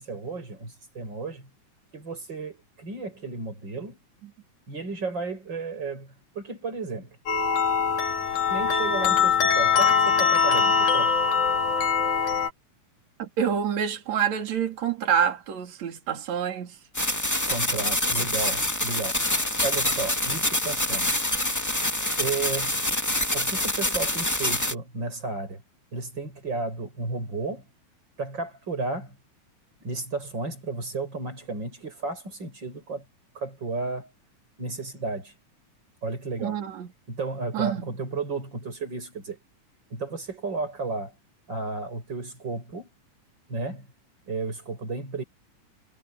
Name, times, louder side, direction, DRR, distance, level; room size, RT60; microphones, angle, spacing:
voice 1, 0.0-1.5 1.9-4.0 4.7-7.2 8.5-11.2 17.5-21.3 22.2-22.8 23.3-25.6 25.9-27.7 28.2-29.2 29.8-33.0 33.3-34.1 34.6-35.3 36.0-36.6 37.1-39.4 39.9-41.1 41.5-42.9 43.5-43.9 44.3-45.2, right 3 dB, 30° right, 7.5 m, -33 dB
sound 1, 7.3-12.5, left 6 dB, 65° left, 4.8 m, -22 dB
voice 2, 13.2-16.8 36.4-36.9 37.5-37.8, right 8 dB, 55° right, 3.9 m, -27 dB
sound 2, 16.9-24.7, left 1 dB, 5° left, 1.6 m, -26 dB
omnidirectional pair, 3.8 m